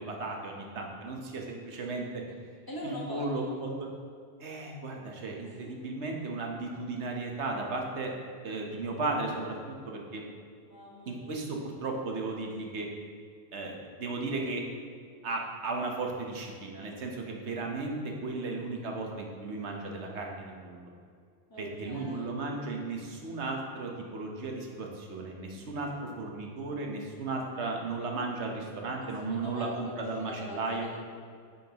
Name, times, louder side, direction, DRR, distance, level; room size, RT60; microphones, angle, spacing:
voice 1, 0.0-2.2 2.8-3.7 4.4-8.1 8.4-9.6 9.9-10.2 11.1-12.9 13.5-14.6 15.2-20.9 21.6-30.9, right 3 dB, 70° right, 1 dB, 1.2 m, -35 dB
voice 2, 2.7-3.6 5.4-5.7 10.6-11.3 21.5-22.3 29.0-31.0, left 1 dB, 20° left, -4 dB, 1.3 m, -43 dB
9.0 x 5.8 x 2.9 m, 2.2 s
omnidirectional pair, 1.2 m